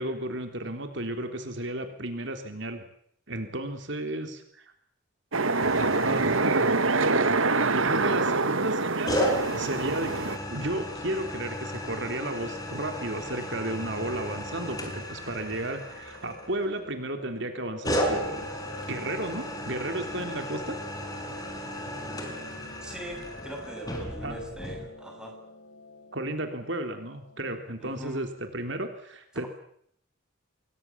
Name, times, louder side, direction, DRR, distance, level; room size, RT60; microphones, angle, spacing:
voice 1, 0.0-2.8 3.3-4.7 5.7-9.2 9.5-18.5 18.9-20.8 24.2-24.4 26.1-29.5, right 1 dB, 60° right, 6 dB, 3.5 m, -33 dB
sound 1, 5.3-10.4, right 3 dB, 85° right, 1.8 m, -25 dB
sound 2, 5.6-7.1 9.1-16.9 17.8-24.9, equal, 20° left, 5.4 m, -34 dB
Piano, 13.8-28.3, left 2 dB, 80° left, 7.1 m, -49 dB
voice 2, 22.8-25.4 27.8-28.3, equal, 5° right, 2 dB, 7.0 m, -41 dB
28.0 x 23.0 x 7.4 m, 0.68 s
head